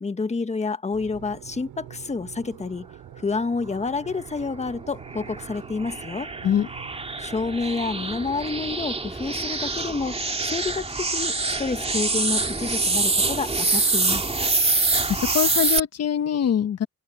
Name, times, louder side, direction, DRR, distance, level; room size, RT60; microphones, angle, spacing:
voice 1, 0.0-2.9 3.2-6.3 7.2-10.2 10.5-14.2, left 4 dB, 20° left, 1.4 m, -29 dB
sound 1, 0.9-8.8, right 12 dB, 80° right, 4.3 m, -45 dB
sound 2, 4.2-15.8, right 3 dB, 20° right, 2.8 m, -26 dB
voice 2, 15.1-16.9, left 9 dB, 55° left, 1.2 m, -23 dB
open air
cardioid pair, 90°, 30 cm